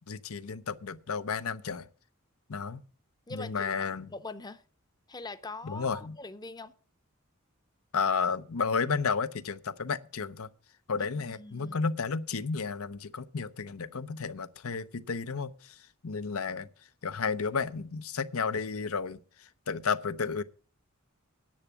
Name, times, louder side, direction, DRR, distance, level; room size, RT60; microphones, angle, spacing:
voice 1, 0.1-1.9 2.5-2.8 3.3-4.1 5.6-6.2 7.9-10.5 10.9-15.7 16.0-16.7 17.0-19.2 19.7-20.4, left 5 dB, 85° left, 0.8 m, -32 dB
voice 2, 3.3-3.7 4.1-4.6 5.1-6.7 11.0-11.9, left 3 dB, 20° left, 0.7 m, -43 dB
10.5 x 7.1 x 8.4 m
head